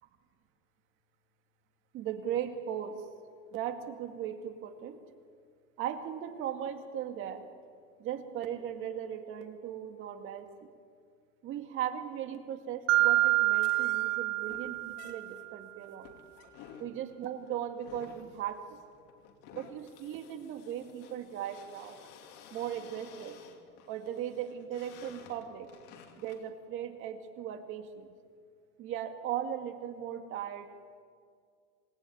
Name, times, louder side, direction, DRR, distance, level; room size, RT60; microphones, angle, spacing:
voice 1, 1.9-3.0 3.5-5.0 5.8-7.4 8.0-10.7 11.4-16.1 16.8-18.8 19.5-22.0 22.5-23.4 23.9-25.7 26.2-28.1 28.8-30.7, right 10 dB, 35° right, 6 dB, 2.0 m, -38 dB
Mallet percussion, 12.9-15.4, right 17 dB, 70° right, 0.8 m, -27 dB
sound 1, 13.5-26.5, left 7 dB, 40° left, 2.9 m, -54 dB
27.0 x 19.5 x 9.5 m, 2.1 s
supercardioid pair, 175°, 38 cm